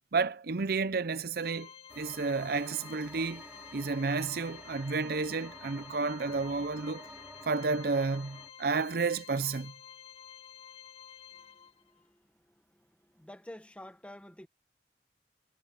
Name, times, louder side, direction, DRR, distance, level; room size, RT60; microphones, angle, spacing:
voice 1, 0.1-1.7 2.0-3.4 3.7-7.1 7.4-9.7, right 4 dB, 60° right, 0.6 m, -31 dB
Organ, 1.4-12.0, left 9 dB, 35° left, 1.5 m, -51 dB
sound 1, 1.9-8.5, right 1 dB, 10° right, 3.9 m, -51 dB
voice 2, 11.5-12.3 12.7-14.5, left 1 dB, 5° left, 1.4 m, -50 dB
head